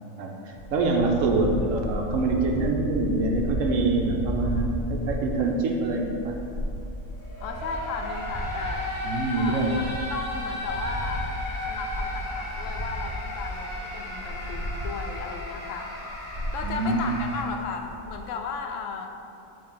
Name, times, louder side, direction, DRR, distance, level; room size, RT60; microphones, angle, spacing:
voice 1, 0.2-6.3 9.0-9.8 16.6-17.0, right 3 dB, 75° right, 1 dB, 1.0 m, -25 dB
sound 1, 0.5-15.6 15.9-18.3, equal, 25° right, 0.8 m, -34 dB
sound 2, 7.1-17.4, left 1 dB, 40° left, 1.4 m, -35 dB
voice 2, 7.4-8.9 9.4-11.3 11.7-15.9 16.5-19.1, left 5 dB, 70° left, 4 dB, 0.9 m, -35 dB
7.0 x 2.8 x 5.4 m, 2.6 s
omnidirectional pair, 1.4 m